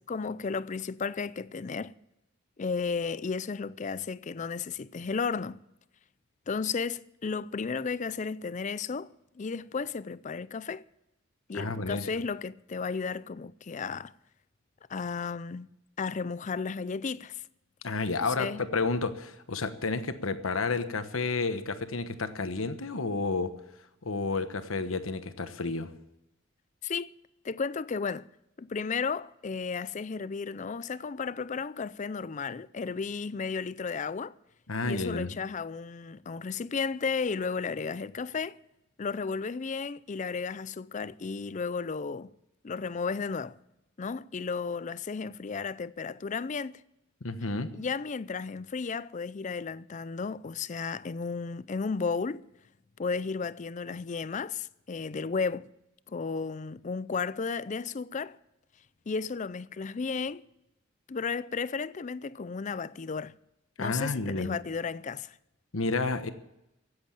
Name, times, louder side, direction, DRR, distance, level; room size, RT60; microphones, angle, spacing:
voice 1, 0.1-1.9 2.6-5.6 6.5-9.1 9.4-10.8 11.5-14.1 14.9-15.7 16.0-17.4 18.2-18.6 26.8-27.1 27.4-28.3 28.6-34.3 34.8-38.6 39.0-42.3 42.6-43.6 44.0-46.8 47.7-52.4 53.0-55.7 56.1-58.4 59.1-60.4 61.1-63.3 63.8-65.4, left 5 dB, 35° left, 0.4 m, -33 dB
voice 2, 11.5-12.1 17.8-23.6 24.0-25.9 34.7-35.4 47.2-47.7 63.8-64.6 65.7-66.3, left 3 dB, 85° left, 1.2 m, -31 dB
16.0 x 8.0 x 8.9 m
head